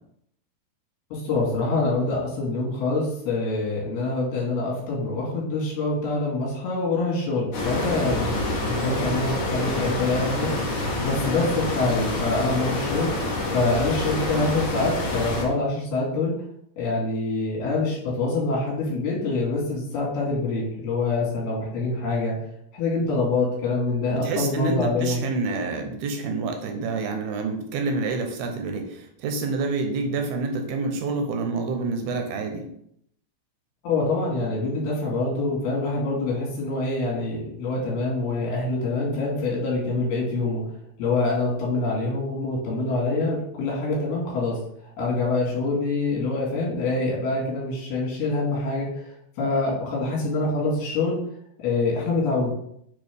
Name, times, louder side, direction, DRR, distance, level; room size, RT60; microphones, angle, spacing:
voice 1, 1.1-10.5 11.0-13.1 13.5-16.3 16.8-22.4 22.7-25.2 33.8-40.6 41.0-44.6 45.0-49.0 49.4-51.2 51.6-52.5, left 3 dB, 80° left, -4 dB, 4.1 m, -25 dB
sound 1, 7.5-15.4, left 2 dB, 55° left, 1.6 m, -27 dB
voice 2, 24.1-32.7, right 3 dB, 80° right, 4 dB, 2.7 m, -28 dB
8.6 x 3.7 x 3.5 m, 0.73 s
omnidirectional pair, 4.4 m